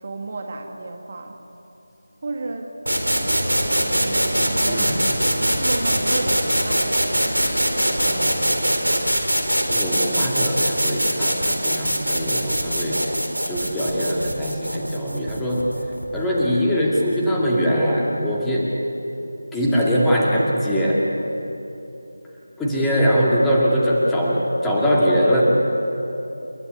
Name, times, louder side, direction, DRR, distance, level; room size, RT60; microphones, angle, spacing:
voice 1, 0.0-1.4 2.2-3.0 4.0-4.9 5.4-7.4, right 3 dB, 35° right, 3 dB, 1.6 m, -32 dB
sound 1, 2.9-16.6, equal, 80° right, 4.0 m, -22 dB
voice 2, 4.7-5.0 8.0-8.5 9.7-13.0 13.5-15.7 16.1-18.7 19.5-21.0 22.6-25.4, equal, 5° left, -6 dB, 2.3 m, -22 dB
29.5 x 12.5 x 9.6 m, 2.9 s
figure-of-eight pair, 165°, 0 cm